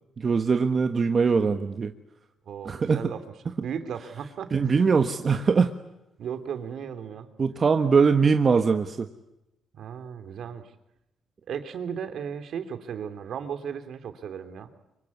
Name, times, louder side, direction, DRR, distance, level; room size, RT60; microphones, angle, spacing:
voice 1, 0.2-1.9 2.6-3.0 4.5-5.7 7.4-9.1, right 5 dB, 40° right, 6 dB, 1.4 m, -22 dB
voice 2, 2.4-3.2 3.6-4.9 6.2-7.3 9.7-10.7 11.5-14.7, right 7 dB, 65° right, 9 dB, 3.0 m, -35 dB
25.0 x 24.0 x 9.7 m, 0.88 s
cardioid pair, 90°, 0 cm